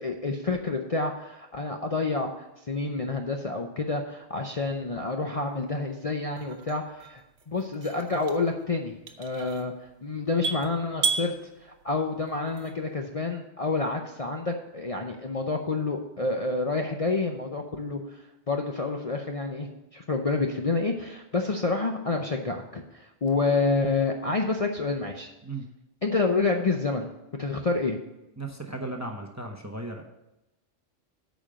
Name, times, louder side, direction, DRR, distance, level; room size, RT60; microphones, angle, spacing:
voice 1, 0.0-7.2 7.5-11.3 11.6-25.3 26.0-27.1 27.4-28.0, left 3 dB, 35° left, 2 dB, 0.7 m, -28 dB
sound 1, 5.4-13.0, right 4 dB, 70° right, 1.1 m, -36 dB
voice 2, 28.4-30.0, right 2 dB, 15° right, 3 dB, 0.8 m, -36 dB
8.8 x 5.2 x 7.5 m, 0.93 s
omnidirectional pair, 1.2 m